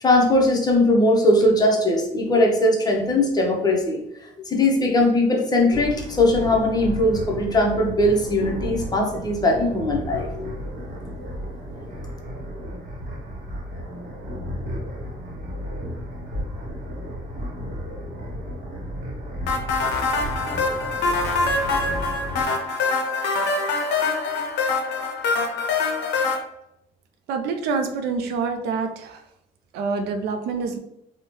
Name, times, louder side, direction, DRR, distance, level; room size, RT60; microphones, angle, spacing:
voice 1, 0.0-4.0 4.5-10.5, left 1 dB, 25° left, 0 dB, 0.6 m, -20 dB
sound 1, 5.7-22.5, equal, 55° right, 0.9 m, -33 dB
sound 2, 19.5-26.4, left 3 dB, 85° left, 0.5 m, -24 dB
voice 2, 27.3-29.2 29.7-30.8, right 4 dB, 80° right, 6 dB, 0.4 m, -26 dB
2.7 x 2.1 x 3.0 m, 0.79 s
cardioid pair, 110°, 17 cm